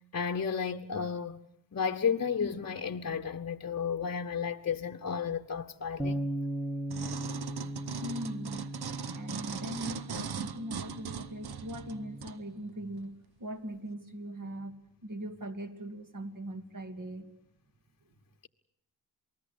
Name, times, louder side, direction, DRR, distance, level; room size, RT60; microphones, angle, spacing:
voice 1, 0.1-1.4 1.7-6.2, left 6 dB, 40° left, 1.0 m, -32 dB
Bass guitar, 6.0-12.2, right 1 dB, ahead, 1.6 m, -38 dB
sound 1, 6.9-12.4 13.0-13.1, right 7 dB, 65° right, 1.0 m, -40 dB
voice 2, 8.0-8.7 9.1-14.7 15.0-17.3, right 1 dB, 50° right, 2.6 m, -40 dB
28.0 x 19.5 x 8.5 m
cardioid pair, 55°, 41 cm